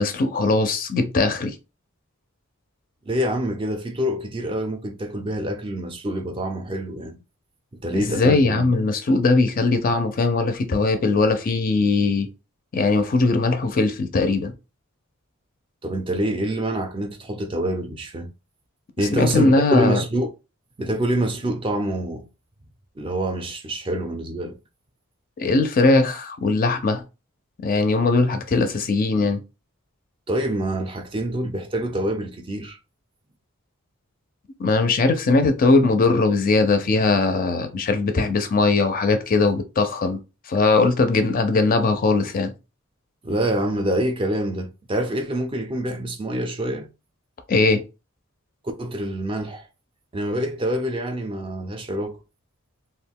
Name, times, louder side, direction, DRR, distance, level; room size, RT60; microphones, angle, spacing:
voice 1, 0.0-1.5 7.9-12.3 12.7-14.5 19.1-20.0 25.4-27.0 27.6-29.4 34.6-40.2 40.5-42.5 47.5-47.8, left 3 dB, 40° left, 0.4 m, -20 dB
voice 2, 3.1-7.2 7.8-8.7 15.8-18.3 19.0-20.3 20.8-22.3 23.0-24.6 30.3-32.8 43.2-46.9 48.8-49.7 50.1-52.2, right 1 dB, 25° right, 0.4 m, -26 dB
2.3 x 2.1 x 3.5 m
head